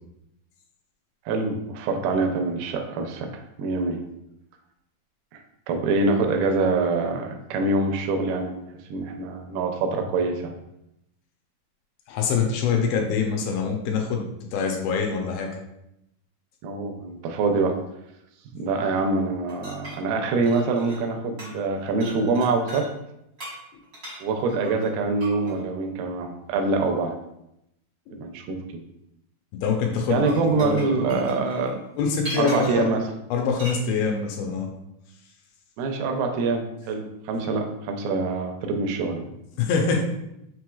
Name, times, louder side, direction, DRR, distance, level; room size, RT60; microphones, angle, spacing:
voice 1, 1.3-4.0 5.3-5.4 5.7-8.6 8.9-10.5 16.6-17.8 18.5-22.9 24.2-27.1 28.2-28.6 30.1-31.8 32.4-33.0 35.8-39.2, right 3 dB, 85° right, 5 dB, 2.4 m, -25 dB
voice 2, 12.1-14.3 14.5-15.5 29.5-30.3 30.6-31.3 32.0-32.9 33.3-34.7 39.6-40.0, left 5 dB, 85° left, 1 dB, 2.5 m, -24 dB
sound 1, 19.5-21.1 21.4-21.7 22.0-22.9 23.4-25.6 26.9-27.0 30.0-32.9 33.6-33.8, equal, 55° right, 0.9 m, -39 dB
5.9 x 3.0 x 2.3 m, 0.83 s
omnidirectional pair, 4.3 m